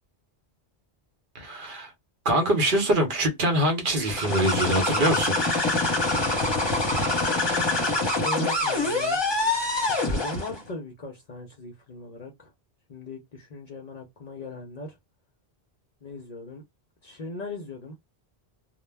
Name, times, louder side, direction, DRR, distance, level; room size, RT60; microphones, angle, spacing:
voice 1, 1.3-1.9 2.2-5.4, right 1 dB, 55° right, 0.8 m, -24 dB
sound 1, 4.0-10.6, left 2 dB, 25° left, 0.8 m, -25 dB
voice 2, 7.9-9.2 9.8-12.5 12.9-15.0 16.0-16.6 17.0-18.0, left 3 dB, 50° left, 0.5 m, -39 dB
2.1 x 2.1 x 3.2 m
omnidirectional pair, 1.1 m